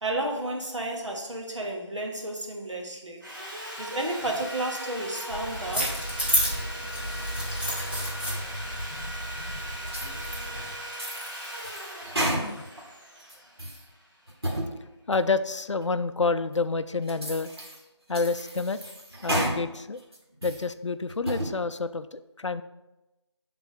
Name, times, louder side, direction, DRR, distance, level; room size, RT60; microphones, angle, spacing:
voice 1, 0.0-3.3 3.8-6.1, right 2 dB, 80° right, 0 dB, 1.4 m, -32 dB
Sawing, 3.2-14.3, equal, 45° right, 1.1 m, -39 dB
sound 1, 5.3-10.7, equal, 20° right, 0.8 m, -31 dB
voice 2, 8.9-9.6 12.2-12.7 15.1-17.5 18.1-18.8 19.2-20.0 20.4-22.6, left 4 dB, 80° left, 12 dB, 0.4 m, -29 dB
sound 2, 9.9-10.5 10.9-12.8 13.2-13.8 14.3-14.7 15.1-15.2 15.8-15.9 16.5-16.6 17.1-17.8 18.1-19.6 20.0-20.6 21.1-21.5, right 1 dB, 60° right, 1.4 m, -32 dB
5.2 x 3.7 x 4.9 m, 0.98 s
figure-of-eight pair, 175°, 15 cm